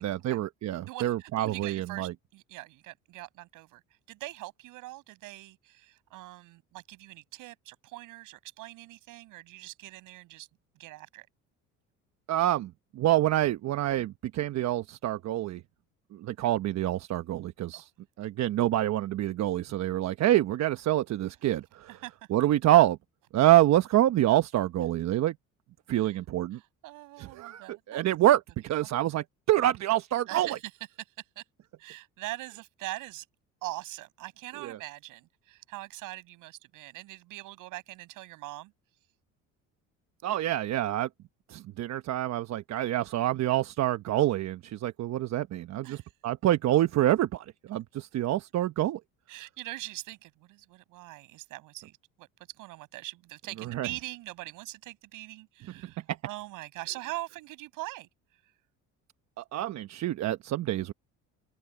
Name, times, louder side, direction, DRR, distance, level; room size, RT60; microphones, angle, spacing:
voice 1, 0.0-2.1 12.3-15.6 16.1-17.9 18.2-21.9 22.3-23.0 23.3-25.3 25.9-26.6 27.2-27.6 27.9-30.6 34.6-34.8 40.2-41.1 41.5-49.0 53.7-53.9 59.4-60.9, right 14 dB, 55° right, 1.0 m, -26 dB
voice 2, 0.9-3.8 4.1-10.5 10.8-11.3 17.7-17.9 21.9-22.1 25.9-26.2 26.5-28.1 30.3-30.7 31.0-31.1 31.4-31.5 31.8-33.3 33.6-38.7 45.8-46.1 49.3-58.1, right 19 dB, 75° right, 7.0 m, -42 dB
open air
supercardioid pair, 90°, 32 cm